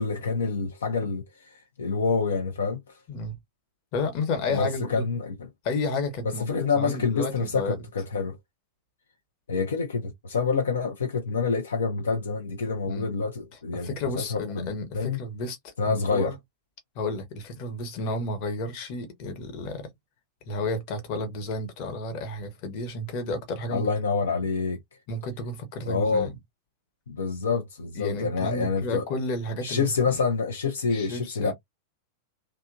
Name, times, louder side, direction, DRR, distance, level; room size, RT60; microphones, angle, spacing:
voice 1, 0.0-1.5 1.8-2.8 4.5-5.4 6.4-8.4 9.5-14.7 14.9-15.2 15.8-16.3 23.7-24.8 25.9-26.3 27.1-29.0 29.6-31.5, left 4 dB, 70° left, 0.7 m, -27 dB
voice 2, 3.9-5.0 5.6-7.8 12.8-13.0 13.7-16.3 16.9-19.9 20.5-23.9 25.1-26.3 28.0-29.8 30.9-31.5, left 2 dB, 45° left, 1.1 m, -32 dB
2.9 x 2.3 x 2.5 m
figure-of-eight pair, 90°, 0 cm